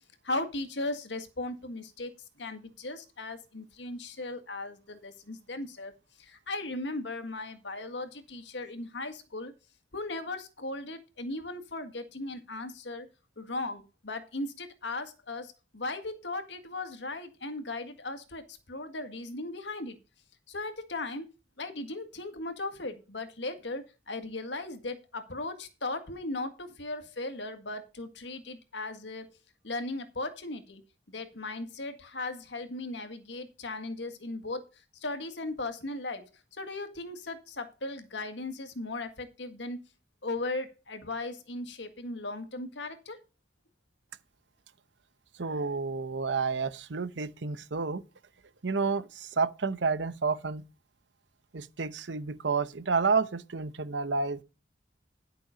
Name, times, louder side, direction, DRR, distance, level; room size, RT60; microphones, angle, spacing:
voice 1, 0.2-2.1 2.4-5.9 6.2-9.5 9.9-13.1 13.4-20.0 20.5-21.3 21.6-29.4 29.6-30.8 31.1-34.6 35.0-36.3 36.5-39.8 40.2-43.2, left 2 dB, 80° left, 1.8 m, -37 dB
voice 2, 45.4-48.0 48.6-50.6 51.5-54.4, right 4 dB, 85° right, 0.9 m, -30 dB
11.5 x 6.1 x 5.1 m
head